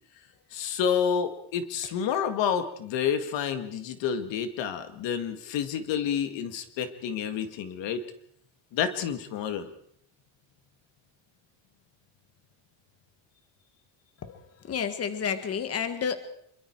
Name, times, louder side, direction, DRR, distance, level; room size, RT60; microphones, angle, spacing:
voice 1, 0.5-8.0 8.7-9.7, left 7 dB, 70° left, 9 dB, 2.0 m, -29 dB
voice 2, 14.7-16.2, left 7 dB, 30° left, 10 dB, 1.6 m, -30 dB
27.0 x 23.0 x 4.6 m, 0.66 s
cardioid pair, 160°, 46 cm